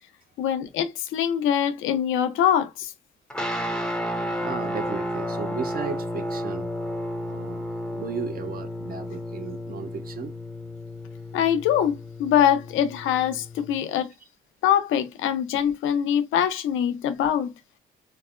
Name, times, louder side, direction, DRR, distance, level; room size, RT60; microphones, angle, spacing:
voice 1, 0.4-2.9 11.3-14.1 14.6-17.5, left 9 dB, 85° left, 0.6 m, -23 dB
sound 1, 3.3-13.8, equal, 5° left, 0.6 m, -32 dB
voice 2, 4.4-6.7 7.3-10.3 13.9-14.0, right 6 dB, 50° right, 0.7 m, -35 dB
3.1 x 2.1 x 2.4 m
cardioid pair, 90°, 20 cm